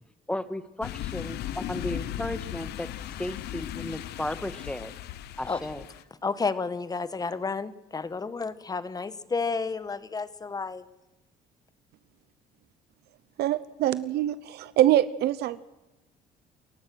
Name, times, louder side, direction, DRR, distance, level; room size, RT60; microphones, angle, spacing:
voice 1, 0.3-2.9 3.2-4.9 5.4-5.8, left 1 dB, 5° left, 11 dB, 1.5 m, -34 dB
sound 1, 0.8-6.0, left 12 dB, 75° left, 1.1 m, -37 dB
voice 2, 6.2-10.9, left 4 dB, 20° left, 14 dB, 1.3 m, -31 dB
voice 3, 13.4-15.6, right 13 dB, 75° right, 16 dB, 0.8 m, -24 dB
28.0 x 15.0 x 6.3 m, 1.0 s
cardioid pair, 110°, 17 cm